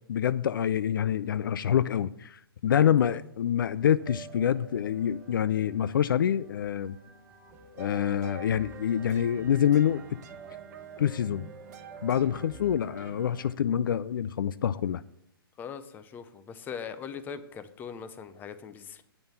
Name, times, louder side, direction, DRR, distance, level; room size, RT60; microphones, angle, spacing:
voice 1, 0.1-7.0 7.8-10.0 11.0-11.5 12.0-15.0, left 9 dB, 60° left, 0.4 m, -26 dB
voice 2, 2.7-3.2 15.6-19.0, left 6 dB, 15° left, 0.6 m, -41 dB
sound 1, 4.0-13.6, right 4 dB, 15° right, 1.3 m, -51 dB
sound 2, 7.8-13.5, right 6 dB, 45° right, 1.1 m, -47 dB
9.0 x 5.5 x 7.1 m
figure-of-eight pair, 130°, 13 cm